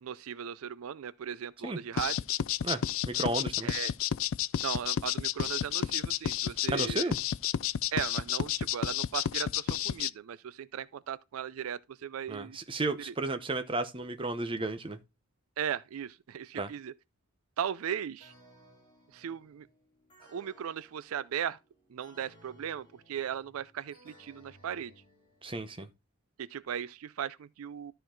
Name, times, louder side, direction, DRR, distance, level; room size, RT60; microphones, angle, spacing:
voice 1, 0.0-2.2 3.6-3.9 4.6-7.1 7.9-12.6 13.1-13.2 15.6-16.9 17.6-18.3 19.1-19.7 20.3-21.6 21.9-24.9 26.4-27.9, right 8 dB, 75° right, 0.4 m, -37 dB
sound 1, 2.0-10.1, left 10 dB, 65° left, 0.3 m, -31 dB
voice 2, 2.6-3.7 6.7-7.2 12.3-15.0 16.5-16.7 25.4-25.9, right 2 dB, 25° right, 0.8 m, -33 dB
sound 2, 18.2-25.8, equal, 25° left, 4.8 m, -60 dB
13.0 x 4.5 x 3.8 m
head